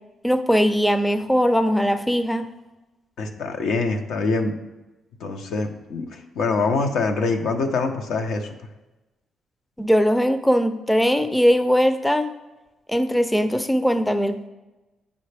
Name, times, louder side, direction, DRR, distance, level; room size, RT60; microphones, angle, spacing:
voice 1, 0.2-2.4 9.8-12.3 12.9-14.5, equal, 5° left, 10 dB, 0.4 m, -20 dB
voice 2, 3.2-4.5 5.2-8.5, left 3 dB, 75° left, 5 dB, 0.8 m, -24 dB
8.6 x 5.4 x 3.4 m, 1.1 s
cardioid pair, 90°, 0 cm